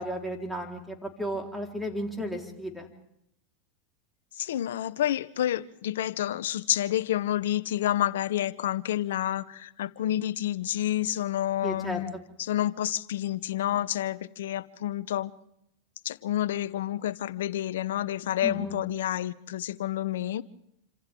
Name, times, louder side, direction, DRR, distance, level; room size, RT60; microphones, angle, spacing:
voice 1, 0.0-2.9 11.6-12.0 18.4-18.8, equal, ahead, 4.3 m, -34 dB
voice 2, 4.4-12.1 12.4-15.3 16.0-20.4, left 12 dB, 75° left, 0.8 m, -29 dB
28.0 x 26.5 x 3.8 m
hypercardioid pair, 95°, 0 cm